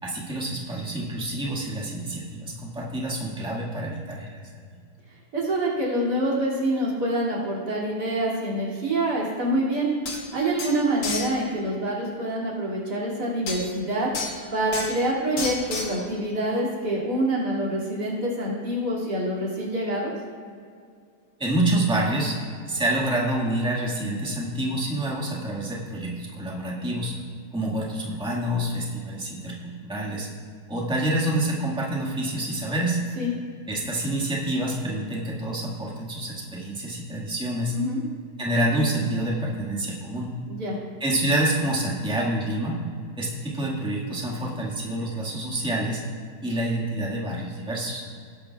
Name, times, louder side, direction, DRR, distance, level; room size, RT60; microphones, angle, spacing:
voice 1, 0.0-4.3 21.4-22.4 22.7-27.2 27.5-30.3 30.7-33.0 33.7-37.8 38.4-40.3 41.0-42.8 43.2-46.0 46.4-48.0, right 1 dB, 5° right, -4 dB, 1.6 m, -27 dB
voice 2, 5.3-9.9 10.3-14.1 14.5-20.1 33.2-33.3 37.7-38.0 40.5-40.8, right 1 dB, 85° right, -6 dB, 3.2 m, -26 dB
sound 1, 9.7-9.8 10.1-10.2 10.6-11.3 13.5-13.6 14.1-14.4 14.7-15.0 15.4-16.0, left 3 dB, 70° left, 1.8 m, -31 dB
18.0 x 10.0 x 2.4 m, 2.2 s
omnidirectional pair, 1.7 m